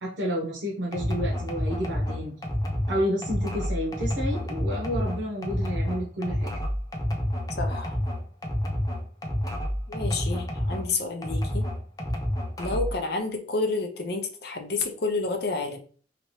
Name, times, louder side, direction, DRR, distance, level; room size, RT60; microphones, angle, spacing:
voice 1, 0.0-2.3 2.9-6.5, equal, 90° right, -3 dB, 0.8 m, -30 dB
sound 1, 0.9-10.9 11.2-13.0, equal, 20° left, 0.6 m, -29 dB
voice 2, 7.6-8.0 9.9-11.7 12.6-15.8, left 3 dB, 60° left, 4 dB, 0.6 m, -30 dB
2.9 x 2.9 x 3.0 m, 0.43 s
head